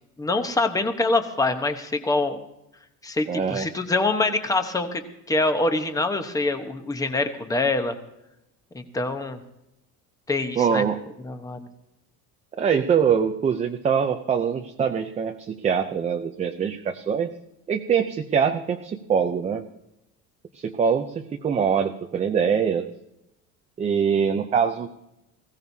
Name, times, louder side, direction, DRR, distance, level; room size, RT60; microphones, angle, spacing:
voice 1, 0.2-2.4 3.0-5.0 5.3-7.9 8.7-9.4 10.3-10.8 11.2-11.7, left 2 dB, 10° left, 7 dB, 1.0 m, -25 dB
voice 2, 3.3-3.7 10.6-11.0 12.6-17.3 17.7-19.7 20.5-22.9 23.8-24.9, right 7 dB, 20° right, 5 dB, 0.5 m, -23 dB
20.5 x 16.5 x 2.7 m, 0.87 s
cardioid pair, 165°, 36 cm